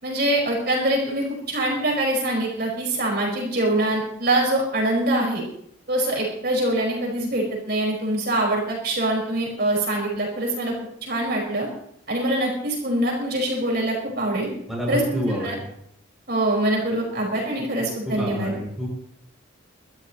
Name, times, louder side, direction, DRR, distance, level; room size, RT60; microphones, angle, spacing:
voice 1, 0.0-5.4 5.9-10.7 11.0-11.7 12.1-14.5 14.9-15.5 16.3-18.5, right 1 dB, 50° right, -2 dB, 5.3 m, -24 dB
voice 2, 14.7-15.6 18.0-19.0, equal, ahead, -4 dB, 7.3 m, -28 dB
25.0 x 13.5 x 3.1 m, 0.71 s
head